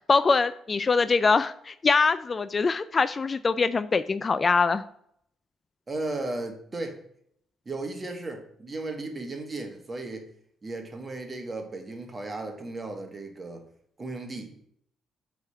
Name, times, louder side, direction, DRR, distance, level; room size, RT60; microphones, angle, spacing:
voice 1, 0.1-4.8, left 4 dB, 35° left, 13 dB, 0.3 m, -23 dB
voice 2, 5.9-7.0 7.6-10.2 10.6-13.7 14.0-14.7, right 2 dB, 30° right, 4 dB, 1.5 m, -35 dB
8.0 x 3.5 x 5.7 m, 0.68 s
cardioid pair, 90°, 0 cm